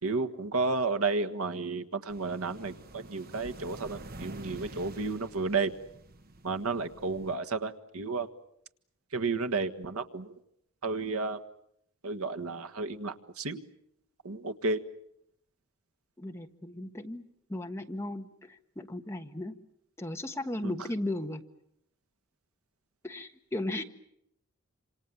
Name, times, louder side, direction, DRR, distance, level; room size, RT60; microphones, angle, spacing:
voice 1, 0.0-5.7 6.4-8.3 9.1-10.3 10.8-11.4 12.0-13.6 14.2-14.8 20.6-20.8, right 3 dB, 80° right, 8 dB, 1.6 m, -32 dB
sound 1, 2.1-7.4, right 2 dB, 40° right, 1.0 m, -48 dB
voice 2, 16.2-17.2 17.5-19.5 20.0-21.4 23.0-23.8, left 1 dB, 10° left, 5 dB, 1.4 m, -36 dB
27.5 x 27.0 x 7.2 m, 0.74 s
head